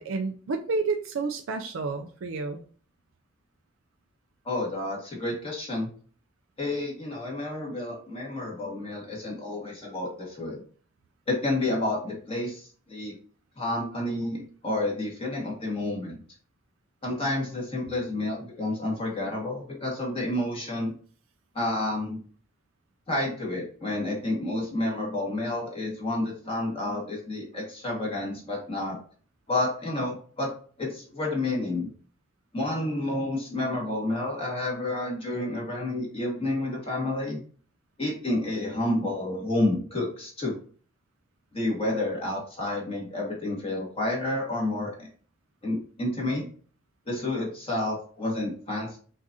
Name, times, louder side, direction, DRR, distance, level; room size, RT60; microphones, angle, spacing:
voice 1, 0.0-2.6, right 4 dB, 70° right, 5 dB, 0.4 m, -30 dB
voice 2, 4.4-5.9 6.6-10.6 11.3-13.1 13.6-16.2 17.0-20.9 21.5-22.2 23.1-29.0 29.5-30.5 30.8-31.9 32.5-37.4 38.0-40.6 41.5-45.1 45.6-46.5 47.1-49.0, left 2 dB, 30° left, -2 dB, 1.5 m, -30 dB
6.0 x 2.5 x 2.7 m, 0.43 s
head